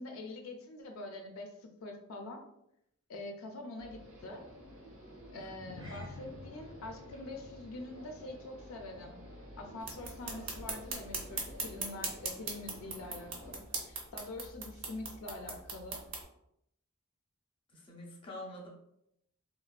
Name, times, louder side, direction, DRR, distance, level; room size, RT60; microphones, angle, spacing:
voice 1, 0.0-2.4 3.1-4.4 5.3-9.2 9.6-16.0, left 2 dB, 70° left, 3 dB, 0.4 m, -45 dB
sound 1, 3.8-13.5, equal, 85° right, 0.9 m, -51 dB
sound 2, 5.4-10.1 10.3-10.6 11.1-11.2, left 1 dB, 20° right, 0.5 m, -52 dB
sound 3, 9.8-16.2, right 4 dB, 60° right, 0.6 m, -41 dB
voice 2, 17.7-18.7, left 1 dB, 25° left, -2 dB, 0.5 m, -46 dB
3.2 x 2.0 x 2.2 m, 0.78 s
head